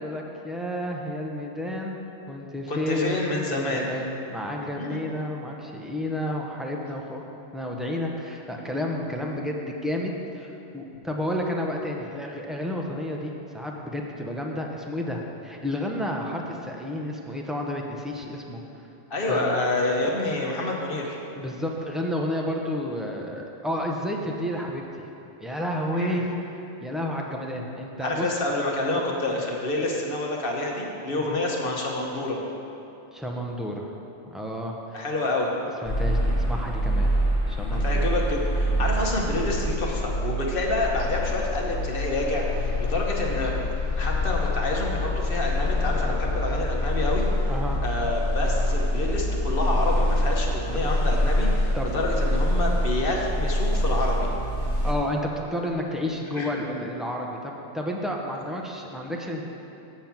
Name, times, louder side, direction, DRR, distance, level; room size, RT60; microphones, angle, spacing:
voice 1, 0.0-2.0 2.3-7.2 7.5-18.6 19.2-19.8 21.3-25.0 25.4-26.3 26.8-28.3 31.1-31.4 33.1-33.9 34.3-35.0 35.8-37.1 37.5-38.1 47.5-47.8 51.7-51.9 54.8-59.4, left 1 dB, ahead, 0 dB, 0.6 m, -31 dB
voice 2, 2.7-3.9 4.8-5.0 19.1-21.2 25.9-26.2 28.0-32.4 34.9-35.5 37.8-43.5 44.0-47.5 47.8-54.3 56.4-56.5, left 2 dB, 50° left, -1 dB, 1.2 m, -28 dB
sound 1, 35.8-54.9, left 1 dB, 80° left, 1.6 m, -25 dB
7.8 x 7.0 x 5.9 m, 2.8 s
omnidirectional pair, 1.2 m